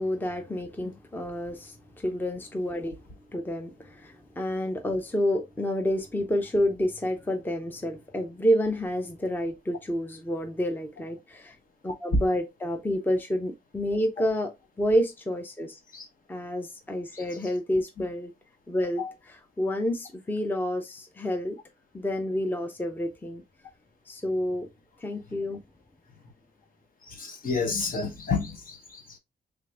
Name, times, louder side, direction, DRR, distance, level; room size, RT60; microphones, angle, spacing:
voice 1, 0.0-2.9 3.3-11.6 11.8-15.8 16.3-18.3 18.7-19.0 19.6-21.6 21.9-23.4 24.1-24.7 25.0-25.6, equal, 10° left, 0.6 m, -29 dB
voice 2, 27.0-29.2, left 3 dB, 55° left, 1.1 m, -29 dB
5.0 x 3.4 x 2.4 m
wide cardioid pair, 135°, 17 cm